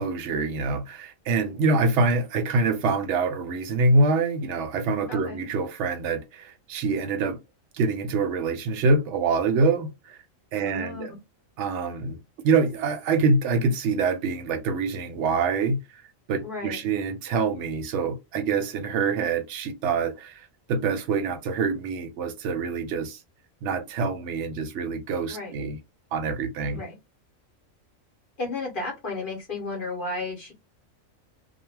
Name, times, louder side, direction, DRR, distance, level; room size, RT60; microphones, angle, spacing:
voice 1, 0.0-7.4 7.7-10.2 10.5-11.1 11.6-16.0 16.3-23.2 23.6-25.8 26.1-26.8, right 3 dB, 65° right, 0.8 m, -25 dB
voice 2, 5.1-5.4 10.5-11.1 16.4-16.8 25.3-25.5 26.7-27.0 28.4-30.5, left 3 dB, 45° left, 0.9 m, -33 dB
2.2 x 2.2 x 3.1 m
omnidirectional pair, 1.4 m